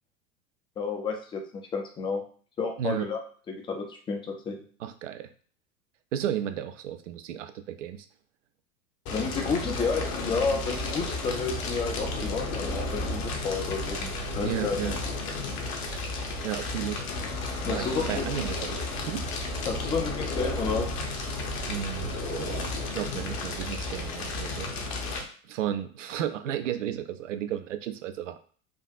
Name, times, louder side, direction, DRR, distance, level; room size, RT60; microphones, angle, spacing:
voice 1, 0.8-1.4 1.7-2.2 2.6-3.2 3.5-4.6 9.1-14.8 15.0-15.1 17.6-18.3 19.7-20.9, left 4 dB, 10° left, 3 dB, 0.4 m, -31 dB
voice 2, 2.8-3.1 4.8-5.3 6.1-8.1 14.4-15.0 16.4-17.0 17.7-18.8 19.1-19.3 21.7-24.7 25.5-28.4, right 10 dB, 60° right, 9 dB, 0.5 m, -33 dB
Fire, 9.1-25.2, left 2 dB, 40° left, 0.8 m, -32 dB
4.6 x 2.4 x 2.4 m, 0.44 s
figure-of-eight pair, 80°, 42 cm